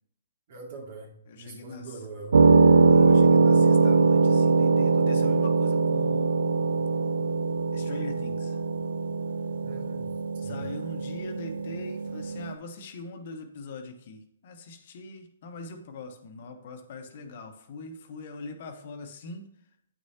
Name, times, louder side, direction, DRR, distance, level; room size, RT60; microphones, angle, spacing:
voice 1, 0.5-2.4 9.6-10.1 10.4-10.6, right 3 dB, 50° right, 0 dB, 2.4 m, -42 dB
voice 2, 1.3-2.0 2.8-6.6 7.7-8.6 10.4-19.4, left 3 dB, 50° left, 6 dB, 1.1 m, -41 dB
sound 1, 2.3-12.5, right 4 dB, 75° right, 0.5 m, -22 dB
8.6 x 6.4 x 2.9 m, 0.74 s
hypercardioid pair, 130°, 0 cm